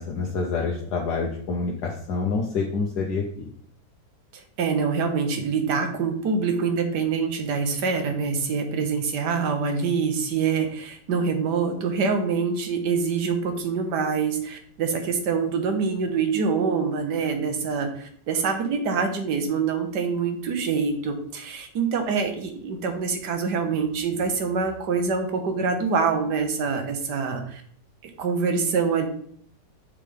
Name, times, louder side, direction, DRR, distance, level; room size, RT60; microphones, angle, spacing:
voice 1, 0.0-3.5, left 4 dB, 70° left, 0 dB, 1.3 m, -27 dB
voice 2, 4.3-27.6 28.2-29.1, right 5 dB, 70° right, 6 dB, 1.5 m, -25 dB
6.7 x 3.3 x 5.3 m, 0.62 s
omnidirectional pair, 1.9 m